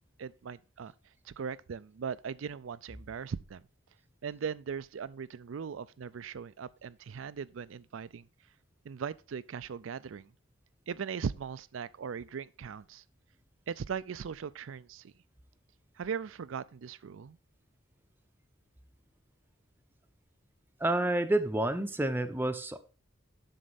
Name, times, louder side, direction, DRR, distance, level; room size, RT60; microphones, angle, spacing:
voice 1, 0.2-0.9 1.2-3.6 4.2-8.3 8.8-10.3 10.9-13.0 13.7-15.1 16.0-17.4, right 6 dB, 80° right, 0.4 m, -39 dB
voice 2, 20.8-22.8, right 1 dB, 10° right, 0.6 m, -29 dB
7.7 x 6.3 x 4.0 m
head